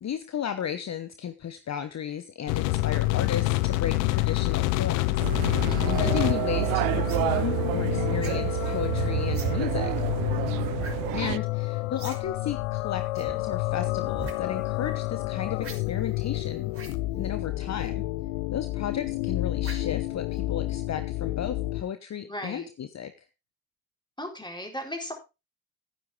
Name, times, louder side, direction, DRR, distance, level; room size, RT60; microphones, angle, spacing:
voice 1, 0.0-9.9 11.1-16.9 17.2-18.0 18.5-23.1, left 9 dB, 40° left, 11 dB, 1.0 m, -34 dB
sound 1, 2.5-21.8, left 18 dB, 80° left, 0.7 m, -28 dB
sound 2, 5.2-11.4, right 24 dB, 75° right, 0.5 m, -29 dB
voice 2, 5.7-6.2 11.2-11.4 22.2-22.7 24.2-25.1, left 1 dB, 10° left, 2 dB, 4.3 m, -37 dB
sound 3, 7.1-7.3 8.2-8.5 9.3-9.5 10.8-11.0 11.3-11.4 12.0-12.2 12.5-12.6 13.1-13.3 14.1-14.3 15.6-15.8 16.7-17.0 17.8-17.9 19.6-19.9 20.4-20.5, right 3 dB, 35° right, 3.8 m, -39 dB
11.5 x 9.9 x 3.7 m, 0.28 s
hypercardioid pair, 45°, 39 cm